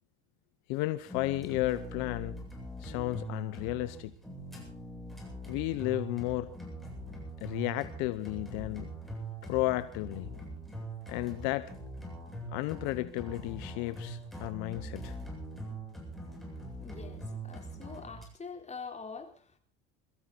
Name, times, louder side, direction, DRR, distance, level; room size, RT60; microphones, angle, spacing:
voice 1, 0.7-2.4 2.8-4.1 5.5-6.5 7.4-8.9 9.5-10.3 11.1-11.7 12.5-15.1, left 18 dB, 75° left, 0.9 m, -33 dB
sound 1, 1.0-18.2, right 1 dB, ahead, 7.9 m, -43 dB
voice 2, 16.8-19.6, left 5 dB, 20° left, 3.9 m, -45 dB
23.0 x 14.5 x 4.1 m
supercardioid pair, 85°, 30 cm